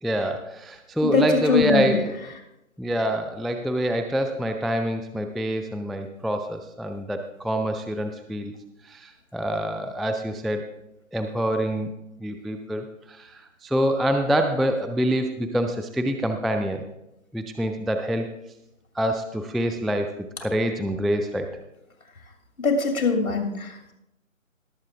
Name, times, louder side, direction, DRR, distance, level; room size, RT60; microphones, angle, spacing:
voice 1, 0.0-2.3 2.8-8.5 8.8-10.6 11.1-11.9 12.2-16.8 17.3-18.3 19.0-21.5, equal, ahead, 5 dB, 0.3 m, -26 dB
voice 2, 1.5-2.0 22.6-23.9, left 4 dB, 90° left, 3 dB, 2.6 m, -22 dB
18.5 x 7.4 x 3.5 m, 0.87 s
figure-of-eight pair, 165°, 41 cm